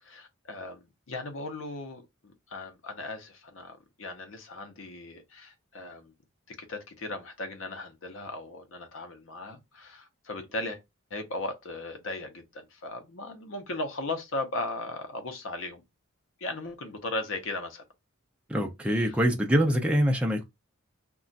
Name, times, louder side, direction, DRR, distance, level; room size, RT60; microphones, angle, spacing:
voice 1, 0.0-6.1 6.5-10.8 11.1-15.8 16.4-17.8 18.9-19.1, left 2 dB, 65° left, 0.7 m, -37 dB
voice 2, 18.5-20.4, equal, 5° right, 0.4 m, -24 dB
2.4 x 2.2 x 3.8 m
head